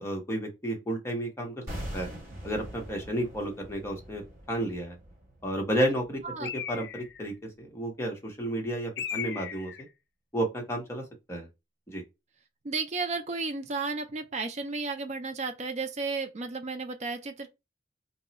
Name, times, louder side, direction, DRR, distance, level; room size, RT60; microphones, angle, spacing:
voice 1, 0.0-1.7 1.9-2.1 2.4-5.0 5.4-9.7 10.3-11.5 11.9-12.0, right 1 dB, 15° left, 0.9 m, -32 dB
sound 1, 1.7-6.7 6.9-7.1, right 1 dB, 15° right, 1.6 m, -43 dB
Bird, 6.4-7.3 9.0-9.9, left 8 dB, 60° left, 0.4 m, -37 dB
voice 2, 12.6-17.5, right 3 dB, 35° right, 0.4 m, -33 dB
2.9 x 2.3 x 4.0 m
head